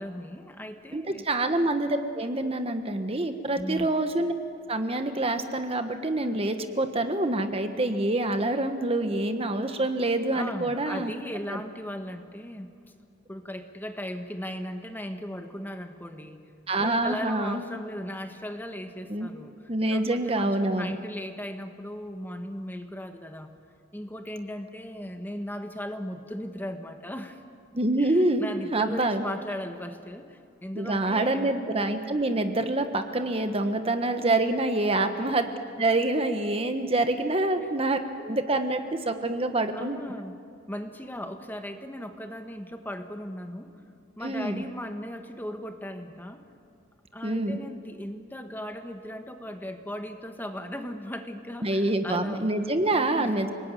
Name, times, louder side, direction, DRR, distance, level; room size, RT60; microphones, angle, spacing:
voice 1, 0.0-1.3 3.6-3.9 10.3-12.7 13.3-16.4 16.8-19.5 19.9-23.5 23.9-27.4 28.0-31.5 34.7-34.9 35.3-35.4 37.6-37.7 39.7-40.4 40.7-43.7 44.2-46.4 47.1-52.5 53.1-53.4, equal, 10° left, 6 dB, 1.4 m, -37 dB
voice 2, 0.9-4.3 4.7-11.1 11.5-11.6 16.7-17.6 19.1-19.3 19.7-20.9 27.7-29.2 30.8-35.4 35.8-40.0 44.2-44.6 47.2-47.6 51.6-53.5, right 2 dB, 30° right, 7 dB, 1.3 m, -26 dB
29.5 x 20.0 x 9.3 m, 2.4 s
head